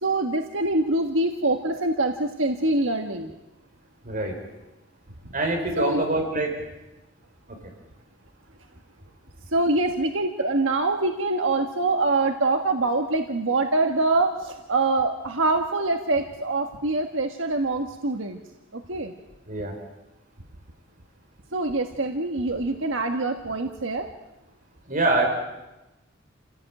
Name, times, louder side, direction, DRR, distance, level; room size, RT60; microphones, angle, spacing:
voice 1, 0.0-3.3 5.8-6.0 9.5-18.4 18.7-19.1 21.5-24.1, right 2 dB, 85° right, 4 dB, 1.6 m, -24 dB
voice 2, 4.0-4.3 5.3-6.5 7.5-7.6 19.5-19.8 24.9-25.3, right 2 dB, 45° right, 2 dB, 4.9 m, -24 dB
28.5 x 16.5 x 9.1 m, 1.0 s
head